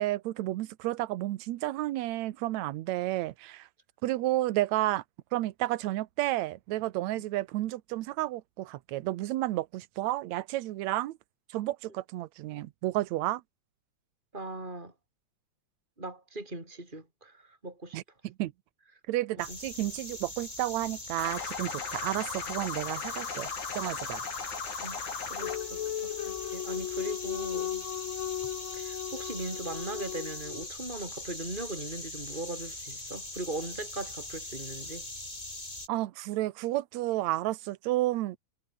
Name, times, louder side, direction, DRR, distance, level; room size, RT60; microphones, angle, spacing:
voice 1, 0.0-3.7 4.0-5.0 5.3-11.2 11.5-13.4 17.9-18.5 19.1-23.5 23.7-24.2 35.9-38.4, right 16 dB, 75° right, 2.1 m, -31 dB
voice 2, 14.3-14.9 16.0-18.0 19.5-19.6 23.9-24.0 24.8-27.8 28.7-35.0, right 2 dB, 15° right, 6.6 m, -39 dB
sound 1, 19.4-35.9, left 2 dB, 15° left, 3.6 m, -42 dB
sound 2, 21.2-25.6, left 6 dB, 85° left, 4.9 m, -37 dB
sound 3, 25.4-30.7, left 12 dB, 70° left, 1.2 m, -36 dB
omnidirectional pair, 3.3 m